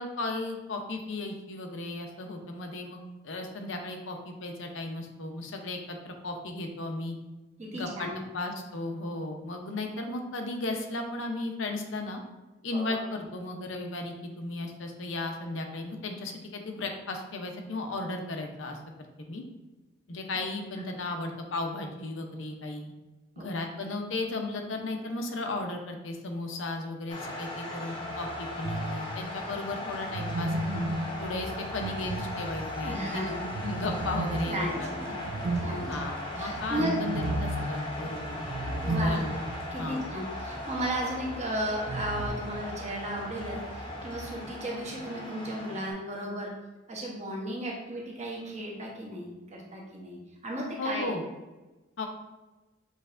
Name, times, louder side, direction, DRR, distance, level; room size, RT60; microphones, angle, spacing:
voice 1, 0.0-3.0 3.2-7.2 7.7-8.1 8.3-12.2 12.6-18.8 19.2-19.4 20.1-22.9 23.4-30.5 31.2-34.7 35.0-35.1 35.9-38.5 38.8-39.3 39.8-40.0 50.8-51.2 52.0-52.1, left 2 dB, 80° left, 4 dB, 0.7 m, -35 dB
voice 2, 7.6-8.2 12.7-13.2 23.4-23.5 32.8-33.4 34.5-35.2 35.6-36.1 36.4-37.0 38.8-39.2 39.7-46.5 46.9-51.2, equal, 35° right, -2 dB, 0.9 m, -35 dB
sound 1, 27.1-45.9, left 1 dB, 25° left, 0.7 m, -38 dB
sound 2, 28.6-29.3 30.1-32.9 33.5-39.7 40.0-40.1 41.9-42.3, right 1 dB, 85° right, 0.5 m, -33 dB
6.5 x 3.2 x 2.5 m, 1.1 s
head